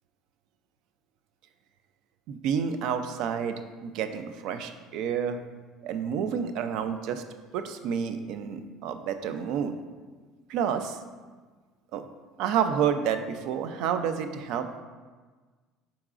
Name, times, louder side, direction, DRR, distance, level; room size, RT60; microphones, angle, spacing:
voice 1, 2.3-5.4 5.8-7.2 7.5-9.8 10.5-11.0 11.9-12.0 12.4-14.8, right 7 dB, 65° right, 9 dB, 0.3 m, -29 dB
4.6 x 3.9 x 2.4 m, 1.4 s
cardioid pair, 145°, 0 cm